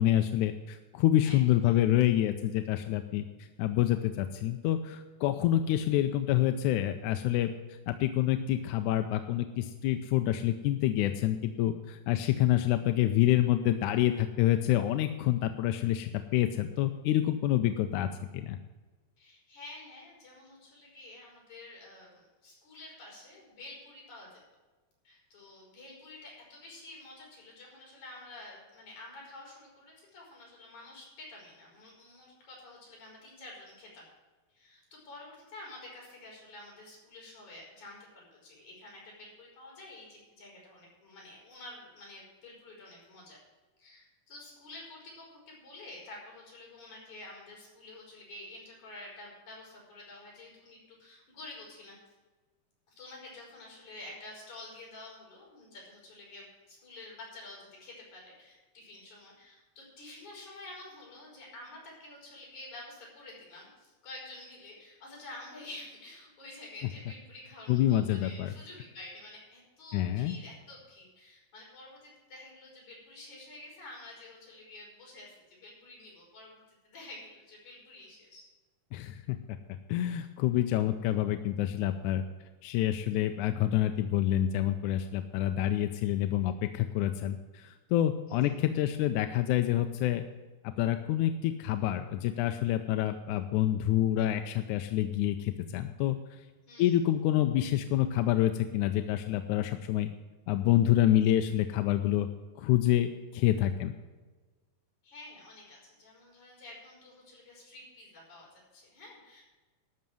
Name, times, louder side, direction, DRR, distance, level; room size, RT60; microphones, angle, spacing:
voice 1, 0.0-18.6 67.7-68.5 69.9-70.4 78.9-82.2 82.6-90.3 90.6-96.5 96.8-100.1 100.5-102.3 102.6-103.9, left 12 dB, 80° left, 8 dB, 1.9 m, -27 dB
voice 2, 19.2-24.4 25.0-34.0 34.5-43.4 43.8-52.0 52.9-78.4 88.3-88.5 96.7-96.9 105.0-109.4, left 2 dB, 65° left, -2 dB, 6.1 m, -49 dB
12.5 x 6.5 x 7.6 m, 1.3 s
omnidirectional pair, 3.7 m